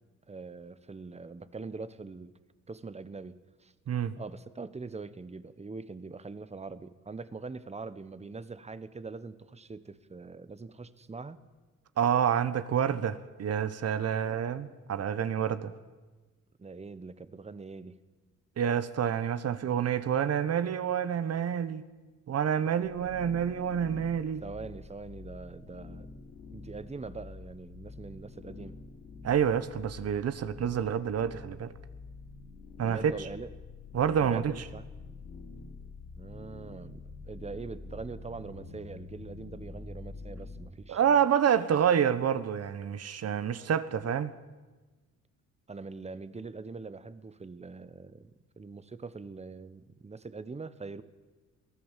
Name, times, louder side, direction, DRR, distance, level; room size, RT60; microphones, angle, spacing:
voice 1, 0.3-2.3 2.7-3.7 4.1-11.4 16.6-18.0 24.4-26.1 26.5-28.8 32.8-33.5 34.2-34.8 36.2-41.2 45.7-51.0, right 4 dB, 20° right, 1.1 m, -43 dB
voice 2, 12.0-15.7 18.6-21.8 22.3-24.4 29.2-31.7 32.8-33.1 33.9-34.5 40.9-44.3, right 8 dB, 55° right, 1.2 m, -28 dB
sound 1, 22.8-40.7, left 3 dB, 60° left, 4.8 m, -46 dB
23.0 x 16.0 x 7.5 m
cardioid pair, 90°, 30 cm